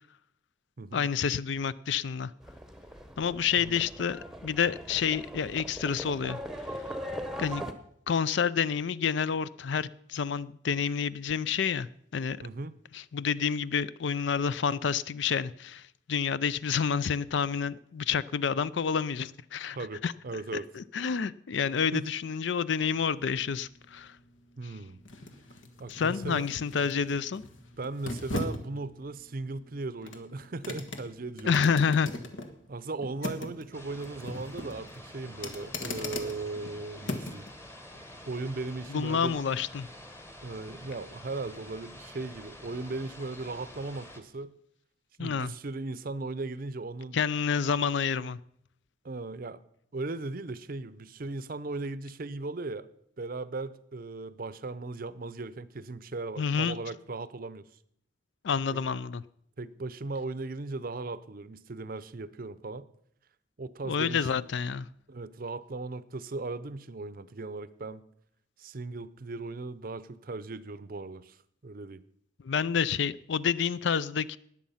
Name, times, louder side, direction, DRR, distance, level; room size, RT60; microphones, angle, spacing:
voice 1, 0.9-2.3 3.2-6.4 7.4-7.6 8.1-11.9 12.1-12.4 12.9-15.8 16.1-19.8 20.0-20.1 20.5-24.2 24.6-24.7 25.9-27.4 31.4-32.1 38.9-39.9 45.2-45.5 47.1-48.4 56.4-56.8 58.4-59.2 63.8-64.9 72.4-74.4, left 6 dB, 65° left, 0.4 m, -29 dB
Livestock farm animals working animals, 2.4-7.7, equal, 5° right, 0.9 m, -40 dB
voice 2, 12.4-12.7 19.7-20.7 21.9-22.1 24.6-25.0 25.8-26.5 27.8-31.6 32.7-37.5 38.3-39.4 40.4-44.5 45.2-47.2 49.0-49.6 49.9-52.9 53.2-57.6 58.7-58.8 59.6-62.9 63.6-64.3 65.1-68.0 68.6-71.4 71.6-72.0, right 3 dB, 50° right, 0.6 m, -37 dB
sound 1, 22.8-37.5 37.9-38.1, left 2 dB, 85° left, 1.6 m, -40 dB
sound 2, 33.7-44.2, left 1 dB, 15° left, 1.2 m, -48 dB
19.5 x 7.3 x 5.6 m
head